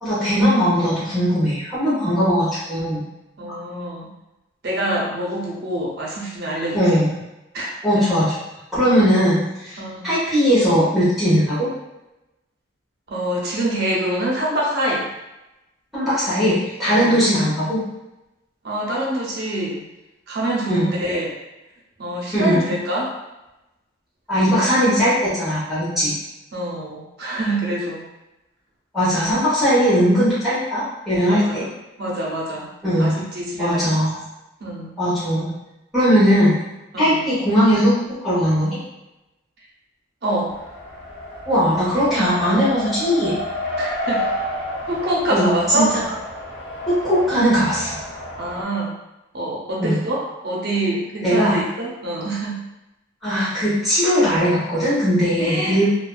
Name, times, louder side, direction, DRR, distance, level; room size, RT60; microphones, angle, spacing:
voice 1, 0.0-3.1 6.7-7.1 7.8-8.3 8.7-9.8 10.0-11.7 15.9-17.8 20.7-20.9 22.3-22.6 24.3-26.1 28.9-31.6 32.8-33.2 33.6-34.2 35.0-35.5 35.9-36.5 37.0-38.8 41.5-43.3 45.3-46.0 46.9-48.0 49.8-50.0 51.2-51.6 53.2-55.9, equal, ahead, -13 dB, 0.9 m, -19 dB
voice 2, 3.4-4.1 4.6-6.8 7.5-7.7 8.0-8.1 9.8-10.1 13.1-15.1 16.8-17.3 18.6-19.8 20.3-21.3 22.0-23.1 26.5-28.0 31.3-31.7 32.0-32.7 33.0-33.8 34.6-34.9 36.9-37.3 40.2-40.5 43.8-44.2 44.9-45.9 48.4-48.9 49.3-52.6 55.4-55.9, right 1 dB, 55° right, -4 dB, 0.6 m, -25 dB
Race car auto racing, 40.5-48.6, equal, 70° left, 1.0 m, -30 dB
2.4 x 2.2 x 2.3 m, 0.95 s
head